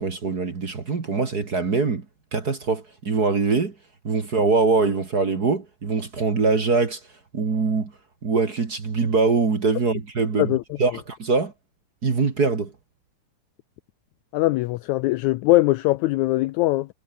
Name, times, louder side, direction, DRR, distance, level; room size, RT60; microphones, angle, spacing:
voice 1, 0.0-2.1 2.3-3.7 4.0-7.0 7.3-7.9 8.2-11.5 12.0-12.7, right 4 dB, 35° right, 2.0 m, -23 dB
voice 2, 14.3-16.9, left 18 dB, 90° left, 1.6 m, -21 dB
omnidirectional pair, 3.9 m